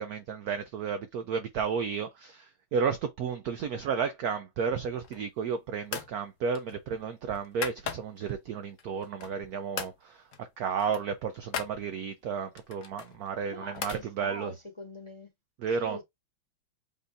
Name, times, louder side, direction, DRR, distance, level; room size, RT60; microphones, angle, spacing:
voice 1, 0.0-14.5 15.6-16.0, right 6 dB, 75° right, 0.9 m, -32 dB
sound 1, 4.9-5.4 5.9-6.2 6.5-8.3 8.8-9.5 9.7-10.0 10.3-10.5 10.7-11.8 12.5-14.0, left 7 dB, 55° left, 0.9 m, -39 dB
voice 2, 13.5-15.3 15.8-16.0, left 1 dB, 20° left, 1.1 m, -43 dB
5.2 x 2.7 x 3.3 m
omnidirectional pair, 2.2 m